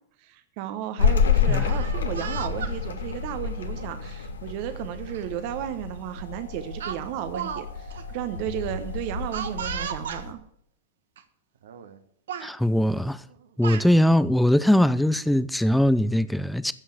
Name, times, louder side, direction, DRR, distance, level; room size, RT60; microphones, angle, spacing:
voice 1, 0.2-10.4, right 11 dB, 50° right, 1.0 m, -34 dB
sound 1, 1.0-10.3, left 6 dB, 80° left, 1.4 m, -28 dB
Speech, 1.7-2.8 3.7-3.9 5.1-5.2 5.6-5.8 6.8-7.7 7.9-8.0 9.3-10.2 11.2-11.3 11.6-12.0 12.3-12.5 13.3-13.9, right 8 dB, 70° right, 1.2 m, -35 dB
voice 2, 12.4-13.2 13.6-16.7, left 1 dB, ahead, 0.5 m, -21 dB
15.0 x 5.6 x 7.4 m
hypercardioid pair, 105°, 0 cm